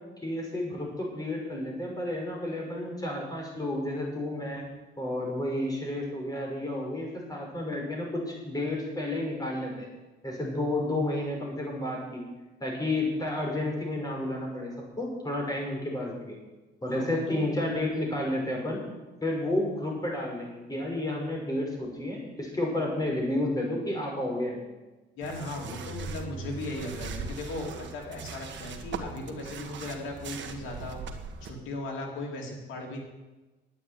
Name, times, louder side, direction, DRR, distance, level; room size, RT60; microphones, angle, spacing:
voice 1, 0.2-4.6 5.0-9.9 10.2-12.2 12.6-16.4 16.8-18.8 19.2-24.6, left 1 dB, 20° left, -1 dB, 5.8 m, -31 dB
voice 2, 16.9-17.5 25.1-31.0 31.4-33.0, left 2 dB, 90° left, 0 dB, 3.3 m, -37 dB
sound 1, 25.2-31.5, right 4 dB, 65° right, 1.5 m, -39 dB
10.5 x 9.3 x 9.2 m, 1.1 s
cardioid pair, 90°, 20 cm